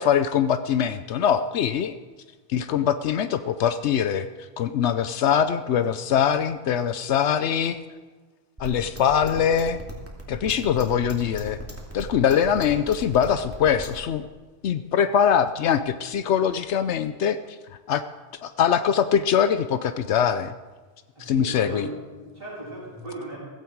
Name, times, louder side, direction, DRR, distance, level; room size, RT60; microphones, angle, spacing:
voice 1, 0.0-2.0 2.5-4.3 4.6-7.8 8.6-9.8 10.3-11.6 11.9-14.2 14.6-17.6 17.9-18.0 18.4-20.5 21.2-21.9, left 8 dB, 85° left, 11 dB, 1.0 m, -22 dB
sound 1, 8.6-14.0, equal, 10° right, 2.8 m, -37 dB
voice 2, 21.1-23.4, right 1 dB, 55° right, -11 dB, 6.5 m, -37 dB
16.0 x 16.0 x 4.7 m, 1.3 s
omnidirectional pair, 1.1 m